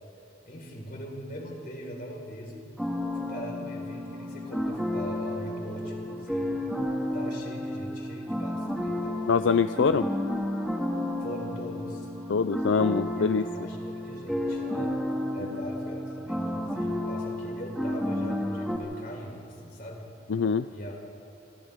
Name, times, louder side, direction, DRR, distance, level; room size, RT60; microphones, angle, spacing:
voice 1, 0.5-2.7 3.1-6.6 7.1-9.2 9.9-10.0 11.2-12.1 13.2-14.9 15.3-20.1 20.7-20.9, equal, 50° left, -1 dB, 4.7 m, -41 dB
sound 1, 2.8-18.8, left 1 dB, ahead, 2.1 m, -32 dB
voice 2, 9.3-10.1 12.3-13.4 20.3-20.7, left 5 dB, 80° left, 11 dB, 0.4 m, -24 dB
28.0 x 25.5 x 3.7 m, 2.5 s
head